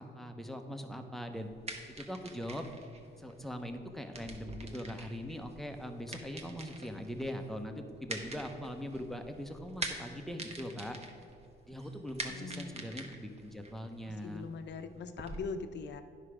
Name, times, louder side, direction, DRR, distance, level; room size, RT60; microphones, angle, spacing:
voice 1, 0.0-1.5 2.0-2.6 3.2-11.0 11.7-14.5, equal, ahead, 5 dB, 0.8 m, -41 dB
sound 1, 1.3-15.4, right 2 dB, 30° right, 1.0 m, -46 dB
voice 2, 12.3-12.9 14.2-16.0, left 4 dB, 60° left, 8 dB, 0.7 m, -41 dB
9.8 x 5.7 x 4.9 m, 2.5 s
cardioid pair, 90°, 20 cm